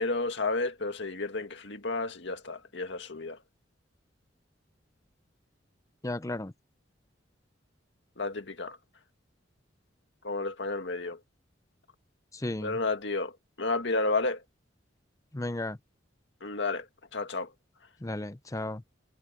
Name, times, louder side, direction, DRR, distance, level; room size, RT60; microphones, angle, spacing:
voice 1, 0.0-3.4 8.2-8.8 10.2-11.2 12.6-14.4 16.4-16.9 17.1-17.5, left 3 dB, 65° left, 2.1 m, -31 dB
voice 2, 6.0-6.5 12.4-12.7 15.3-15.8 18.0-18.8, left 2 dB, 20° left, 0.7 m, -34 dB
head